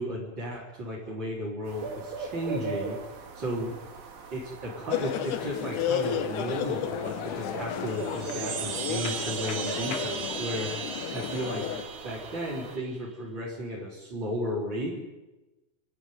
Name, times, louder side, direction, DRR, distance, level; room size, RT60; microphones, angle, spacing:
voice 1, 0.0-3.0 3.3-3.7 4.3-11.6 12.0-15.0, equal, 30° right, -7 dB, 4.8 m, -34 dB
sound 1, 1.7-12.8, right 4 dB, 75° right, 4.1 m, -41 dB
sound 2, 4.9-11.8, left 8 dB, 65° left, 2.5 m, -32 dB
sound 3, 7.9-12.9, right 7 dB, 55° right, 2.4 m, -37 dB
28.5 x 11.5 x 9.5 m, 1.1 s
omnidirectional pair, 4.1 m